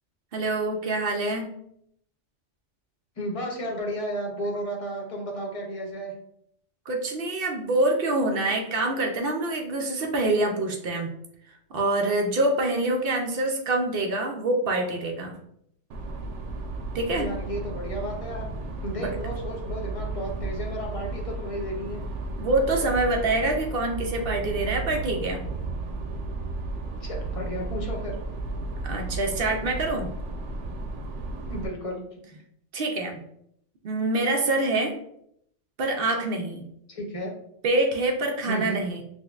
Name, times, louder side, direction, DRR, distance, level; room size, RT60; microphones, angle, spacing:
voice 1, 0.3-1.5 6.9-11.1 11.7-15.4 16.9-17.3 19.0-19.1 22.4-25.4 28.8-30.1 32.7-33.2 33.8-35.0 35.8-36.7 37.6-39.0, right 2 dB, 60° right, 2 dB, 0.7 m, -25 dB
voice 2, 3.2-6.1 17.1-18.4 18.8-22.0 26.8-28.2 31.5-32.2 36.9-37.3 38.5-38.8, equal, 35° left, 0 dB, 0.8 m, -33 dB
sound 1, 15.9-31.7, right 2 dB, 90° right, 0.9 m, -34 dB
5.8 x 2.1 x 2.3 m, 0.71 s
omnidirectional pair, 1.2 m